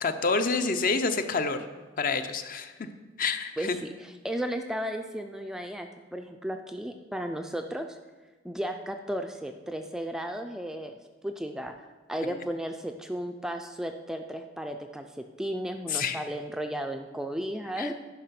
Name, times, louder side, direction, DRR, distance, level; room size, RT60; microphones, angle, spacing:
voice 1, 0.0-1.6 2.0-2.9 3.2-3.8 12.3-12.4 15.9-16.2 17.8-17.9, left 4 dB, 45° left, 9 dB, 0.6 m, -28 dB
voice 2, 3.6-8.0 8.4-11.7 12.1-17.9, equal, 5° right, 5 dB, 0.3 m, -34 dB
10.5 x 5.4 x 5.8 m, 1.3 s
head